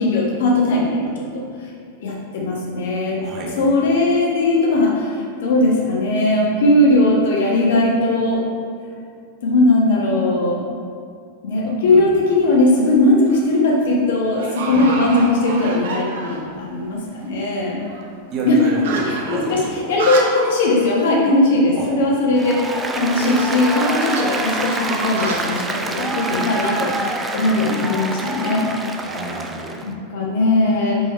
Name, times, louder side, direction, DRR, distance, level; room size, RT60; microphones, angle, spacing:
voice 1, 0.0-1.4 2.0-3.2 3.6-8.4 9.4-10.6 11.4-17.8 18.4-18.7 19.3-19.6 19.9-22.7 22.9-28.7 29.8-31.0, left 2 dB, 55° left, -3 dB, 1.4 m, -18 dB
voice 2, 3.2-3.5 11.9-12.0 14.7-14.9 18.3-19.7 21.8-21.9 23.1-23.3 29.0-29.8, right 2 dB, 35° right, -2 dB, 1.3 m, -29 dB
sound 1, 12.1-12.5 13.0-13.5 13.8-13.9 14.4-16.6 16.9-17.0 17.2-20.6 20.9-21.0 21.3-21.4 23.3-27.0, right 3 dB, 55° right, 1.0 m, -30 dB
Applause, 22.3-29.9, right 2 dB, 15° right, 0.5 m, -26 dB
5.5 x 5.4 x 4.3 m, 2.2 s
figure-of-eight pair, 90°, 0 cm